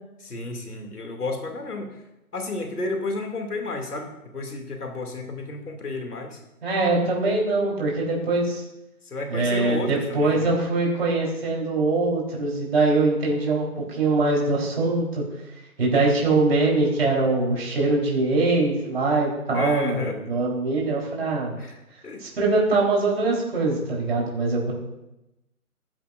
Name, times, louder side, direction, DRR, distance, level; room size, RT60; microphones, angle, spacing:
voice 1, 0.2-1.9 2.3-6.4 9.0-10.5 19.5-20.2 21.6-21.8 22.0-22.2, left 2 dB, 80° left, 3 dB, 2.6 m, -31 dB
voice 2, 6.6-8.6 9.3-15.2 15.8-21.5 22.2-24.7, right 3 dB, 40° right, -3 dB, 3.9 m, -23 dB
15.5 x 11.0 x 2.6 m, 0.93 s
hypercardioid pair, 170°, 45 cm